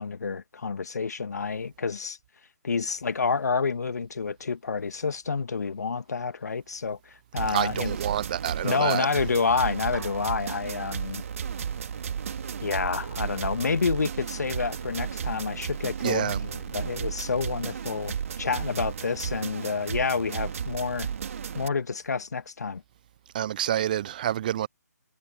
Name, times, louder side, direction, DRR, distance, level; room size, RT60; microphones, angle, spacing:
voice 1, 0.0-2.2 2.6-8.0 8.6-11.2 12.6-21.1 21.5-22.8, left 5 dB, 65° left, 1.7 m, -29 dB
sound 1, 7.4-21.7, right 7 dB, 50° right, 2.7 m, -34 dB
voice 2, 7.5-9.1 16.0-16.4 23.3-24.7, right 11 dB, 30° right, 0.4 m, -28 dB
sound 2, 9.9-11.2 11.8-14.2 14.6-16.4, right 4 dB, 70° right, 4.5 m, -48 dB
figure-of-eight pair, 145°, 9 cm